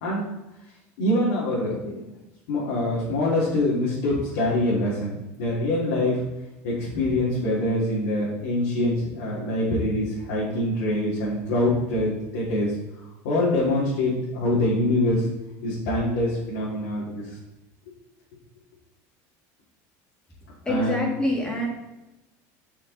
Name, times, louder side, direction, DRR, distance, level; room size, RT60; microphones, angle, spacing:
voice 1, 1.0-2.2 2.5-6.2 6.6-12.7 13.2-15.2 15.6-17.2 20.7-21.1, left 1 dB, 80° left, -7 dB, 2.8 m, -24 dB
voice 2, 20.7-21.7, left 1 dB, 10° left, -1 dB, 2.1 m, -25 dB
8.1 x 5.9 x 4.1 m, 1.0 s
supercardioid pair, 145°, 8 cm